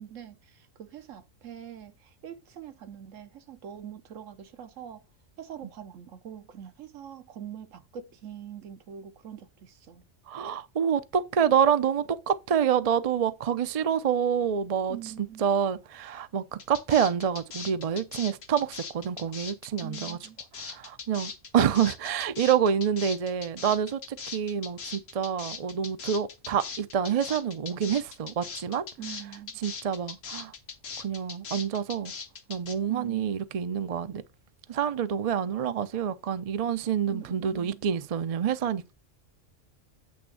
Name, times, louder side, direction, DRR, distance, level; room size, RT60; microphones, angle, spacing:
voice 1, 0.0-5.0 5.4-10.0 14.9-15.4 19.8-20.4 29.0-29.6 32.9-33.4 37.1-37.8, right 9 dB, 75° right, 1.2 m, -43 dB
voice 2, 10.3-20.2 20.6-28.8 29.6-30.5 31.0-32.1 32.5-34.2 34.7-38.9, right 8 dB, 45° right, 0.5 m, -27 dB
sound 1, 16.6-32.7, left 5 dB, 75° left, 1.5 m, -40 dB
8.6 x 3.5 x 6.1 m
omnidirectional pair, 1.3 m